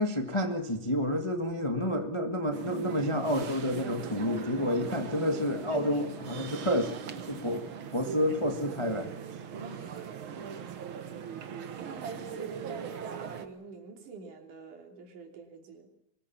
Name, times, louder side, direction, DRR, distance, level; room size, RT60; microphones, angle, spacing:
voice 1, 0.0-7.7 7.9-9.1, left 1 dB, 25° left, 5 dB, 0.6 m, -29 dB
sound 1, 2.5-13.5, right 6 dB, 55° right, 1.7 m, -40 dB
voice 2, 4.3-4.7 5.7-6.0 9.5-10.1 11.7-15.9, right 4 dB, 75° right, 3 dB, 4.7 m, -44 dB
23.5 x 20.0 x 7.3 m, 0.78 s
omnidirectional pair, 3.7 m